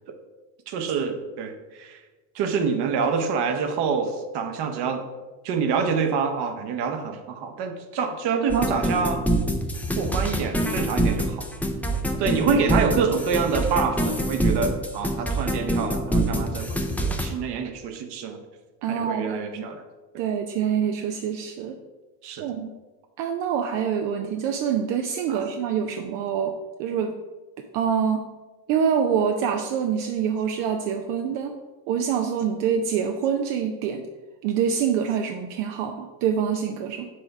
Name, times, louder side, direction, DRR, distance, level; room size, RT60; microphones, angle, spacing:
voice 1, 0.7-2.0 2.3-5.0 5.4-9.2 10.0-11.5 12.2-18.4 18.9-19.8 22.2-22.5 25.3-25.5, right 5 dB, 55° right, 7 dB, 1.0 m, -26 dB
sound 1, 8.5-17.3, right 1 dB, 5° left, 0.5 m, -25 dB
voice 2, 18.8-19.6 20.2-21.8 22.4-22.7 23.2-26.5 26.8-27.1 27.7-28.3 28.7-31.5 31.9-34.0 34.4-37.1, right 7 dB, 75° right, 4 dB, 0.7 m, -25 dB
6.1 x 3.5 x 5.8 m, 1.2 s
supercardioid pair, 105°, 47 cm